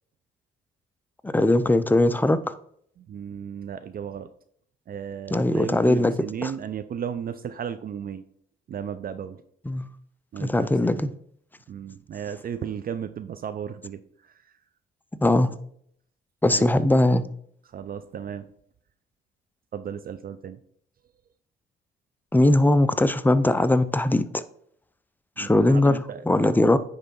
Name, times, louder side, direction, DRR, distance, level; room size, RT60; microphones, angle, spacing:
voice 1, 1.2-2.5 5.3-6.1 6.4-6.5 9.7-9.9 10.4-11.1 15.2-15.6 16.4-17.2 22.3-24.4 25.4-26.8, left 1 dB, 10° left, 0.5 m, -20 dB
voice 2, 3.0-4.3 4.9-8.2 8.7-9.4 10.3-11.1 11.7-14.3 16.5-16.7 17.7-18.5 19.7-20.6 25.4-26.2, right 8 dB, 45° right, 0.5 m, -35 dB
9.7 x 3.4 x 5.3 m
cardioid pair, 90°, 20 cm